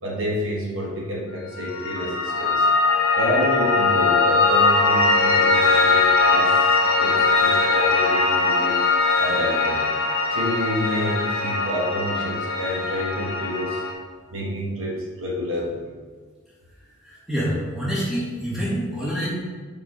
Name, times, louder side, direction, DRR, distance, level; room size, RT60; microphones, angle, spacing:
voice 1, 0.0-2.7 3.1-9.9 10.3-13.8 14.3-15.9, equal, 65° right, -3 dB, 1.2 m, -29 dB
Piano, 1.5-13.9, left 3 dB, 65° left, 1.0 m, -20 dB
voice 2, 17.0-19.3, equal, ahead, -9 dB, 1.6 m, -26 dB
5.3 x 5.0 x 4.9 m, 1.5 s
head